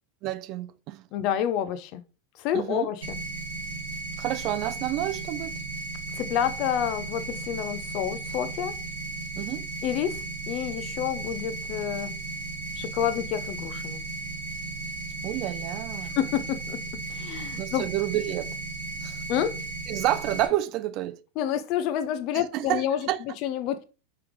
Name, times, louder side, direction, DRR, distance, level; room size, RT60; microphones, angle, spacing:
voice 1, 0.2-1.0 2.5-2.9 4.2-5.5 9.4-9.7 15.2-16.2 17.6-18.6 19.0-19.2 19.9-21.2 22.3-23.2, right 14 dB, 45° right, 0.3 m, -29 dB
voice 2, 1.1-2.0 2.4-3.2 6.2-8.7 9.8-10.2 10.5-12.1 12.8-14.0 16.2-16.8 17.1-17.9 19.3-19.6 21.4-23.8, left 10 dB, 50° left, 0.5 m, -28 dB
sound 1, 3.0-20.5, right 3 dB, 80° right, 1.5 m, -35 dB
5.0 x 3.4 x 3.1 m
supercardioid pair, 135°, 0 cm